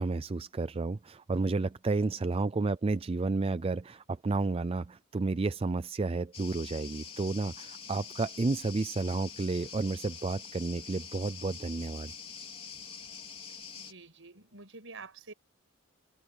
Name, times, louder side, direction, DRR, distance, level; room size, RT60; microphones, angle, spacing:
voice 1, 0.0-12.1, right 3 dB, 30° right, 0.4 m, -31 dB
voice 2, 2.2-2.5 13.8-15.3, right 3 dB, 65° right, 7.0 m, -49 dB
sound 1, 6.3-13.9, left 6 dB, 30° left, 4.1 m, -45 dB
head